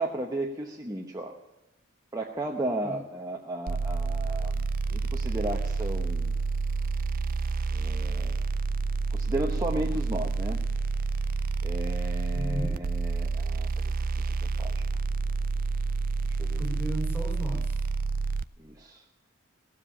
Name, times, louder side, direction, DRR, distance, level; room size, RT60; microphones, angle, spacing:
voice 1, 0.0-1.3 2.1-4.5 4.9-6.3 7.7-8.4 9.1-10.6 11.6-13.8 14.2-14.8 16.3-16.6 18.6-19.0, right 1 dB, 15° right, 0 dB, 0.9 m, -34 dB
sound 1, 3.7-18.4, right 4 dB, 40° right, 0.4 m, -29 dB
voice 2, 12.3-12.8 16.6-17.8, left 1 dB, 10° left, 1 dB, 3.2 m, -35 dB
18.0 x 7.5 x 9.9 m, 1.0 s
head